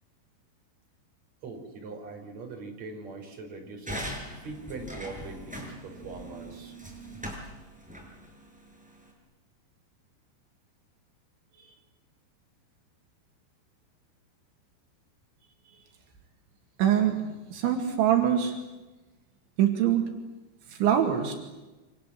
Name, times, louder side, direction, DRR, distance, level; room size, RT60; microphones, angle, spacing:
voice 1, 1.4-6.8 11.5-11.7 15.6-15.8, right 3 dB, 35° right, 3 dB, 6.0 m, -42 dB
sound 1, 3.9-9.1, right 1 dB, ahead, 6.8 m, -41 dB
voice 2, 16.8-18.6 19.6-20.1 20.7-21.4, right 10 dB, 75° right, 4 dB, 4.4 m, -24 dB
29.0 x 26.0 x 7.6 m, 1.1 s
omnidirectional pair, 5.3 m